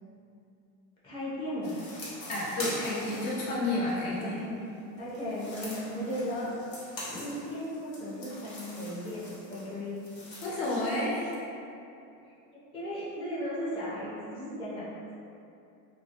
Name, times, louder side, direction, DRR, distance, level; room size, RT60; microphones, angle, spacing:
voice 1, 1.0-1.8 4.2-4.6 5.0-6.5 7.0-10.0 12.2-14.9, equal, 10° left, -9 dB, 0.5 m, -36 dB
sound 1, 1.6-4.4 5.0-11.0, left 1 dB, 85° left, 1.1 m, -43 dB
voice 2, 2.3-4.4 10.4-11.3, left 1 dB, 55° left, -6 dB, 0.9 m, -30 dB
2.2 x 2.1 x 2.8 m, 2.6 s
hypercardioid pair, 95°, 49 cm